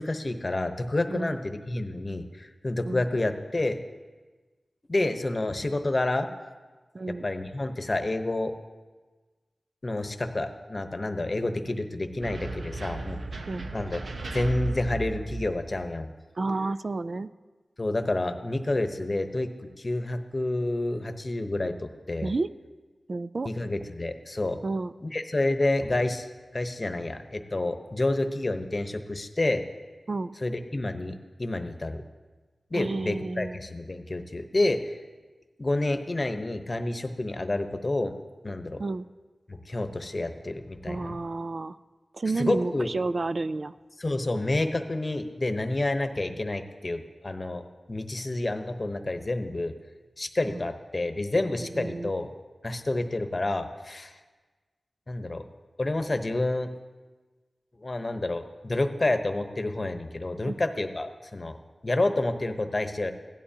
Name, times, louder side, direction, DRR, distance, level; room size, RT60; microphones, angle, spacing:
voice 1, 0.0-3.8 4.9-6.3 7.2-8.5 9.8-13.2 13.7-14.0 14.3-16.1 17.8-19.5 19.8-22.3 23.4-24.6 25.0-26.3 26.5-29.6 30.4-32.0 32.7-35.0 35.6-38.1 38.4-38.8 39.5-41.2 42.4-42.9 44.0-47.6 47.9-49.7 50.2-52.3 52.6-54.1 55.1-55.4 55.8-56.7 57.8-61.5 61.8-63.1, left 2 dB, 40° left, 7 dB, 0.9 m, -29 dB
voice 2, 6.9-7.3 13.5-13.7 16.4-17.3 22.2-22.5 23.1-23.5 24.6-24.9 30.1-30.3 32.7-33.6 38.8-39.1 40.9-41.8 42.1-43.7 50.5-50.7 51.7-52.1 60.5-60.6, right 3 dB, 60° right, 14 dB, 0.3 m, -30 dB
sound 1, 12.2-15.8, right 3 dB, 80° right, 0.7 m, -35 dB
16.5 x 11.5 x 2.8 m, 1.3 s
cardioid pair, 45°, 0 cm